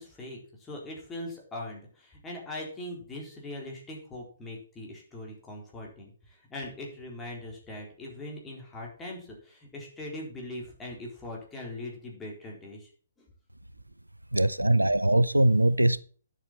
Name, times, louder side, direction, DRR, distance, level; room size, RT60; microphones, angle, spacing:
voice 1, 0.0-12.9 13.2-13.3, left 1 dB, 10° left, 4.1 m, -41 dB
voice 2, 14.3-16.0, right 1 dB, 85° right, 0.5 m, -22 dB
11.5 x 7.7 x 4.5 m
figure-of-eight pair, 130°, 0 cm